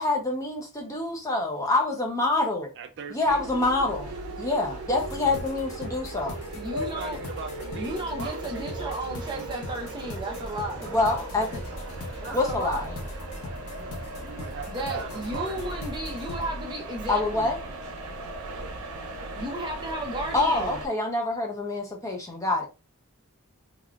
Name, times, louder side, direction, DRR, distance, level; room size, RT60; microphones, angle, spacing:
voice 1, 0.0-2.7 3.1-4.1 4.4-6.4 10.9-11.6 12.3-12.9 17.1-17.6 20.3-22.7, left 2 dB, 15° left, 0.6 m, -26 dB
voice 2, 2.8-3.4 6.8-10.5 12.2-12.4 14.2-15.8, right 6 dB, 50° right, 0.3 m, -40 dB
sound 1, 3.3-20.9, right 2 dB, 85° right, 0.6 m, -38 dB
sound 2, 4.9-16.5, left 1 dB, 90° left, 0.7 m, -41 dB
voice 3, 6.5-7.2 7.7-10.9 12.2-13.0 14.7-17.5 19.4-20.8, right 1 dB, 20° right, 0.7 m, -34 dB
sound 3, 6.7-9.7, left 2 dB, 60° left, 1.0 m, -41 dB
3.5 x 2.3 x 2.3 m
head